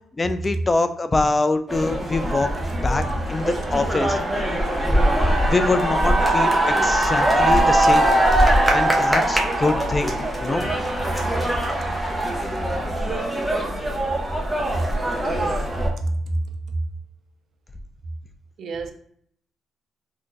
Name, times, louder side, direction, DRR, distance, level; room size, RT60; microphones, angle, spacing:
voice 1, 0.1-2.5 2.8-4.2 5.5-8.1 8.7-10.1 10.4-10.7, left 3 dB, 25° left, 0.3 m, -24 dB
sound 1, 1.7-15.9, right 1 dB, ahead, 0.7 m, -21 dB
voice 2, 11.6-12.0 12.7-12.8 14.7-14.9 15.7-16.8 18.6-18.9, right 2 dB, 65° right, 0.5 m, -28 dB
Bowed string instrument, 11.8-16.7, right 2 dB, 80° right, 1.0 m, -45 dB
2.6 x 2.3 x 3.7 m
cardioid pair, 90°, 0 cm